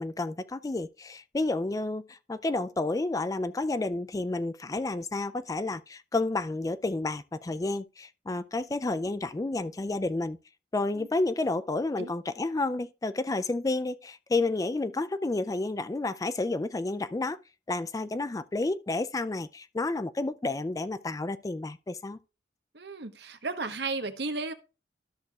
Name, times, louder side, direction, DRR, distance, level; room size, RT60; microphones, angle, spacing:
voice 1, 0.0-10.4 10.7-17.4 17.7-22.2, left 2 dB, 20° left, 0.3 m, -30 dB
voice 2, 22.7-24.5, right 3 dB, 65° right, 1.1 m, -34 dB
13.0 x 6.4 x 2.4 m
head